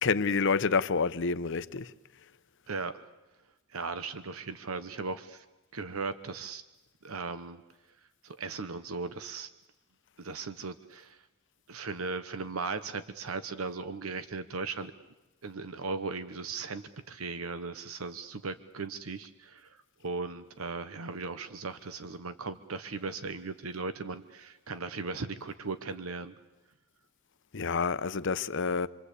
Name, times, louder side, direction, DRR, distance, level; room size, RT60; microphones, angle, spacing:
voice 1, 0.0-1.9 27.5-28.9, left 5 dB, 60° left, 0.8 m, -28 dB
voice 2, 2.7-3.0 3.7-5.4 5.7-6.6 7.0-7.6 8.2-9.5 10.2-11.2 11.7-14.9 15.4-19.8 20.0-26.3, right 4 dB, 80° right, 1.0 m, -37 dB
27.5 x 23.0 x 8.4 m
head